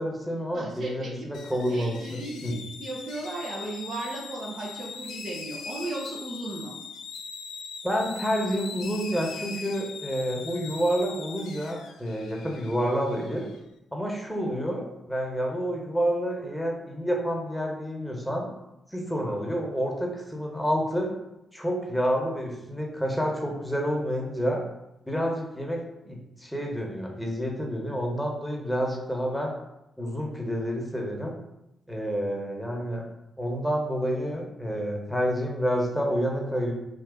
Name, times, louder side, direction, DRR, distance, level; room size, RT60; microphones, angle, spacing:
voice 1, 0.0-2.6 7.8-13.5 13.9-18.5 18.9-21.1 21.5-24.6 25.1-29.5 30.0-31.3 31.9-33.0 33.4-36.7, equal, 5° left, 0 dB, 1.1 m, -29 dB
voice 2, 0.5-6.7, right 2 dB, 60° right, -2 dB, 0.9 m, -36 dB
sound 1, 1.3-13.6, left 5 dB, 80° left, 0.4 m, -41 dB
3.8 x 2.6 x 3.8 m, 0.90 s
hypercardioid pair, 45°, 0 cm